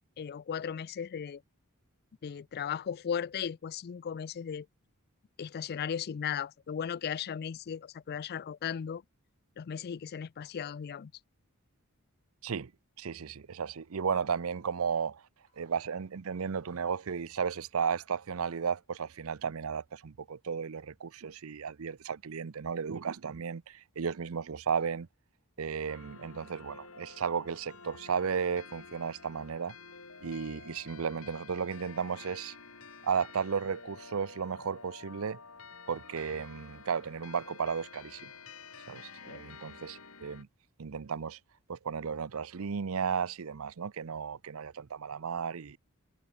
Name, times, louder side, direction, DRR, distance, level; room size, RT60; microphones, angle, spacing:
voice 1, 0.2-1.4 2.2-4.7 5.4-9.0 9.6-11.1 39.3-39.4, left 7 dB, 45° left, 0.4 m, -36 dB
voice 2, 13.0-15.2 15.6-25.1 25.6-29.7 30.2-32.5 33.0-35.4 35.9-38.3 38.9-40.5 40.8-41.4 41.7-45.8, right 6 dB, 70° right, 0.6 m, -34 dB
sound 1, 25.9-40.4, left 5 dB, 70° left, 4.8 m, -50 dB
head